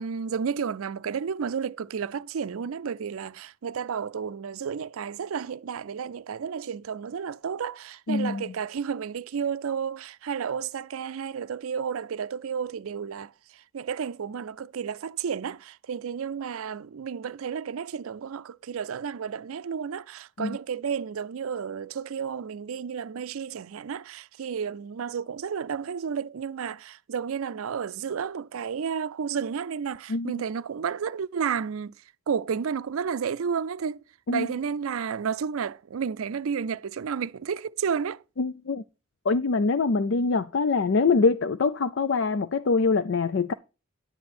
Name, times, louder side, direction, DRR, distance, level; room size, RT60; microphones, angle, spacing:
voice 1, 0.0-13.3 13.7-31.9 32.3-38.2, right 6 dB, 80° right, 0.4 m, -32 dB
voice 2, 8.1-8.4 20.4-20.5 30.1-30.4 34.3-34.5 38.4-38.8 39.3-43.5, left 4 dB, 60° left, 0.5 m, -24 dB
10.5 x 8.6 x 4.3 m
head